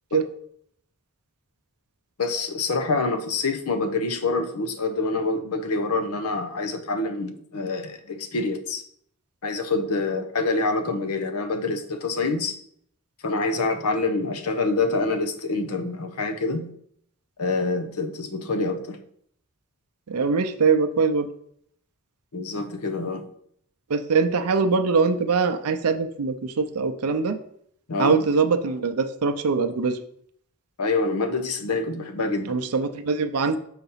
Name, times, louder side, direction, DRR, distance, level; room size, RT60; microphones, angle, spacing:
voice 1, 2.2-8.8 9.4-12.6 13.2-16.7 17.4-19.0 22.3-23.3 27.9-28.3 30.8-32.6, left 3 dB, 85° left, 0.8 m, -26 dB
voice 2, 20.1-21.3 23.9-27.4 28.0-30.0 32.5-33.6, right 4 dB, 90° right, 0.5 m, -22 dB
5.7 x 4.0 x 5.6 m
head